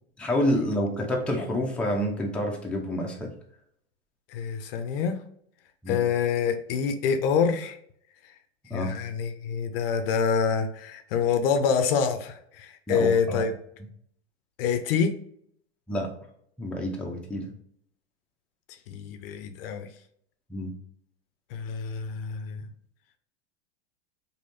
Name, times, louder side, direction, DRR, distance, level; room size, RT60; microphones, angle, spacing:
voice 1, 0.2-3.3 5.8-6.0 8.7-8.9 12.9-13.4 15.9-16.1 16.6-17.5 20.5-20.7, equal, 5° left, -1 dB, 0.5 m, -28 dB
voice 2, 4.3-5.2 5.9-7.8 8.7-13.5 14.6-15.1 18.9-19.9 21.5-22.7, left 6 dB, 60° left, 8 dB, 0.5 m, -26 dB
3.1 x 2.7 x 2.5 m, 0.68 s
hypercardioid pair, 105°, 33 cm